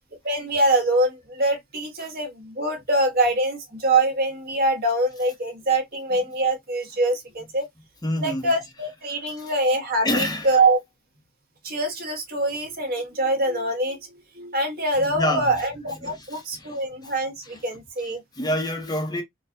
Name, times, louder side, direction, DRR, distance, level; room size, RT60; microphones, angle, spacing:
voice 1, 0.2-7.7 8.2-10.8 11.6-14.0 14.3-18.2, right 2 dB, 45° right, 1.3 m, -24 dB
voice 2, 8.0-8.5 9.3-9.5 10.0-10.6 15.0-15.5 16.0-17.1 17.4-17.6 18.0-18.1 18.4-19.2, left 1 dB, 20° left, 0.8 m, -28 dB
4.4 x 2.3 x 2.6 m
head